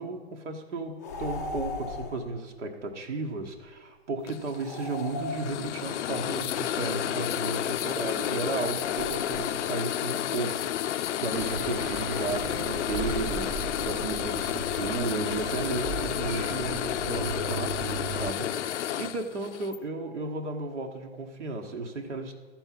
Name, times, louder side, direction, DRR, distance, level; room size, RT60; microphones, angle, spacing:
voice 1, 0.0-22.3, right 3 dB, 85° right, 2 dB, 1.4 m, -34 dB
sound 1, 1.0-2.3 4.6-6.0 8.7-9.8, left 3 dB, 15° left, 0.4 m, -38 dB
sound 2, 4.3-19.8, left 11 dB, 85° left, 0.5 m, -31 dB
sound 3, 11.3-18.3, right 4 dB, 40° right, 1.2 m, -37 dB
13.5 x 4.5 x 7.5 m, 1.3 s
hypercardioid pair, 150°, 34 cm